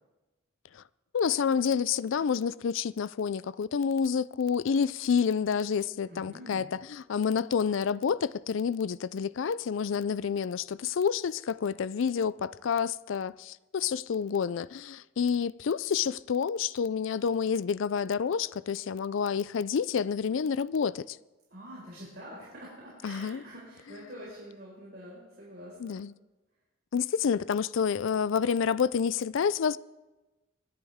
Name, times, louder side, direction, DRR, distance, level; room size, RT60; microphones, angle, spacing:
voice 1, 1.1-21.2 23.0-23.4 25.8-26.1 26.9-29.8, left 6 dB, 65° left, 0.4 m, -29 dB
voice 2, 6.1-6.7 21.5-26.0, equal, 50° right, 5.1 m, -46 dB
25.5 x 10.5 x 3.6 m
head